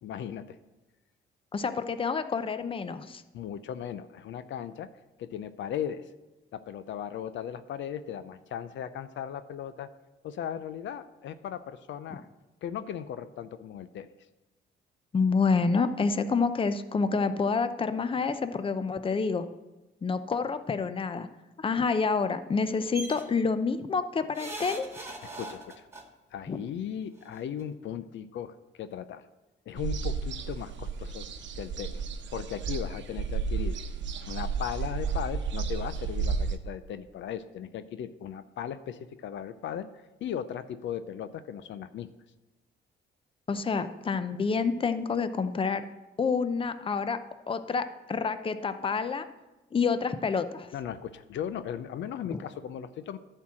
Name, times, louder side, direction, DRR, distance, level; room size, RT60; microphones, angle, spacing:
voice 1, 0.0-0.6 3.3-4.9 5.2-6.1 6.5-9.9 10.2-12.3 12.6-14.1 25.3-25.9 26.3-29.3 29.7-31.3 31.5-32.0 32.3-33.8 34.3-42.1 50.7-53.2, left 9 dB, 70° left, 12 dB, 0.6 m, -37 dB
voice 2, 1.5-3.2 15.1-19.5 20.0-21.3 21.6-24.9 26.5-26.6 43.5-45.8 46.2-47.2 47.5-49.3 49.7-50.7 52.3-52.4, left 5 dB, 25° left, 11 dB, 0.6 m, -28 dB
sound 1, 22.9-23.2 24.3-26.0 27.2-27.3 27.6-27.7, right 2 dB, 15° right, 1.8 m, -40 dB
sound 2, 29.8-36.6, right 5 dB, 70° right, 0.9 m, -32 dB
11.0 x 4.6 x 7.5 m, 1.1 s
cardioid pair, 90°, 20 cm